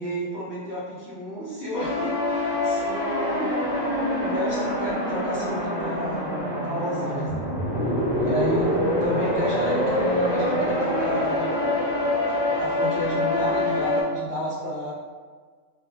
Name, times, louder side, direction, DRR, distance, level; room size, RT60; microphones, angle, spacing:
voice 1, 0.0-3.9 4.2-6.3 6.6-7.5 8.2-8.7 9.0-11.5 12.6-14.9, equal, 15° left, -12 dB, 1.5 m, -32 dB
sound 1, 1.7-14.0, left 1 dB, 35° left, 1.5 m, -25 dB
4.1 x 2.6 x 3.0 m, 1.6 s
omnidirectional pair, 1.3 m